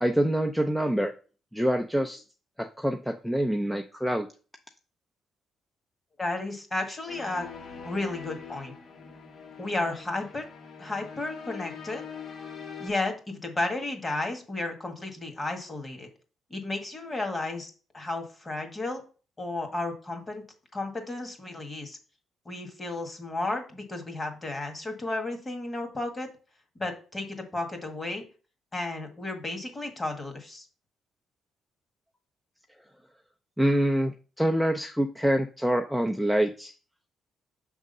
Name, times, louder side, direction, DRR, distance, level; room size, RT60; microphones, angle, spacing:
voice 1, 0.0-1.1 1.5-2.2 2.6-4.3 33.6-36.7, equal, ahead, 5 dB, 0.5 m, -26 dB
voice 2, 6.2-8.7 9.6-10.5 10.8-12.0 12.8-16.1 16.5-19.0 19.4-20.4 20.7-22.0 22.5-26.3 26.8-28.2 28.7-30.7, left 2 dB, 25° left, 4 dB, 1.8 m, -33 dB
sound 1, 7.1-12.9, left 6 dB, 60° left, 1.6 m, -43 dB
6.4 x 3.6 x 5.4 m, 0.37 s
cardioid pair, 90°, 0 cm